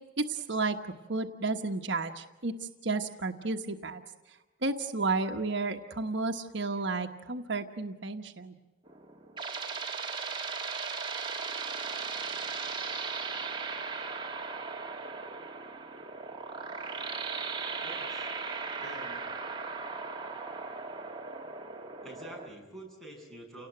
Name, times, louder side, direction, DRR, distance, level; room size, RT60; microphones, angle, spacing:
voice 1, 0.2-0.8 1.1-4.0 4.3-8.5, right 3 dB, 65° right, 4 dB, 1.2 m, -32 dB
sound 1, 8.9-22.5, right 4 dB, 25° right, 1.9 m, -37 dB
voice 2, 17.8-18.3 18.8-19.3 22.0-23.7, right 1 dB, ahead, -1 dB, 7.5 m, -47 dB
29.5 x 18.5 x 9.1 m, 1.2 s
head